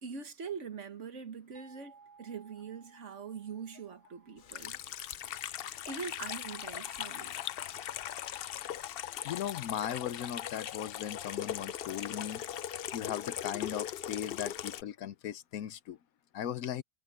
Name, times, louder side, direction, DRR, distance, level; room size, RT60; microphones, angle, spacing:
voice 1, 0.0-4.8 5.9-7.4, right 6 dB, 50° right, 1.6 m, -43 dB
sound 1, 1.5-7.0, right 5 dB, 30° right, 6.1 m, -62 dB
Water tap faucet / Sink (filling or washing), 4.5-14.8, left 10 dB, 85° left, 0.5 m, -39 dB
voice 2, 9.2-12.4 12.9-16.0 16.3-16.8, left 10 dB, 70° left, 1.1 m, -38 dB
omnidirectional pair, 1.6 m